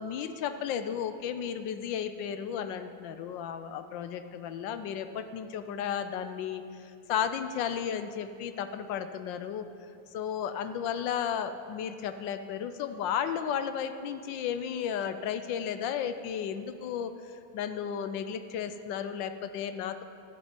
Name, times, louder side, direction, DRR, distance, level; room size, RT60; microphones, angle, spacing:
voice 1, 0.0-9.7 10.1-20.0, left 8 dB, 80° left, 10 dB, 1.3 m, -34 dB
11.0 x 7.7 x 8.9 m, 2.6 s
omnidirectional pair, 2.0 m